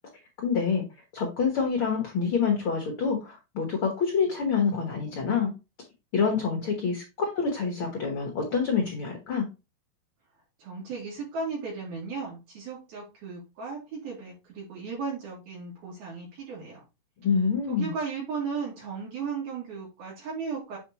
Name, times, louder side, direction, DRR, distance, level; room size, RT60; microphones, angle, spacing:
voice 1, 0.4-0.8 1.1-5.5 6.1-9.5 17.2-17.9, left 5 dB, 60° left, 2 dB, 1.4 m, -27 dB
voice 2, 10.6-16.8 17.7-20.8, right 5 dB, 70° right, -6 dB, 4.3 m, -35 dB
7.7 x 4.7 x 3.0 m, 0.26 s
omnidirectional pair, 4.5 m